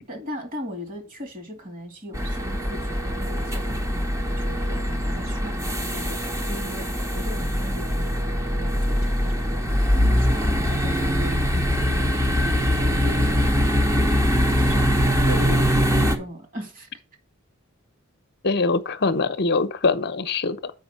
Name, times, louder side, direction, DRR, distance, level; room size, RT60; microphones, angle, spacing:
voice 1, 0.0-12.1 12.4-13.6 14.6-14.9 15.2-16.9, equal, 40° right, 2.6 m, -38 dB
sound 1, 2.1-16.2, equal, 15° right, 1.0 m, -22 dB
voice 2, 18.4-20.7, left 3 dB, 50° left, 0.9 m, -23 dB
8.1 x 5.4 x 5.5 m
head